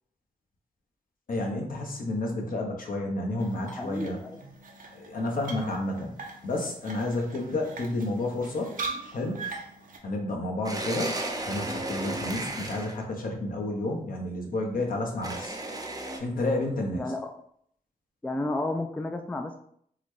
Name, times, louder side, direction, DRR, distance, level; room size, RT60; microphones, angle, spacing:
voice 1, 1.3-4.2 4.9-6.1 6.4-8.7 9.1-9.5 10.0-15.6 16.2-17.1, left 2 dB, 65° left, 1 dB, 0.9 m, -31 dB
sound 1, 3.4-10.0, right 4 dB, 60° right, 0.6 m, -41 dB
voice 2, 3.5-4.4 5.3-5.4 16.9-17.4 18.2-19.6, left 2 dB, 10° left, 5 dB, 0.3 m, -32 dB
sound 2, 10.6-13.0 15.2-16.2, right 2 dB, 25° right, 0.7 m, -33 dB
3.8 x 2.1 x 3.1 m, 0.67 s
cardioid pair, 55°, 16 cm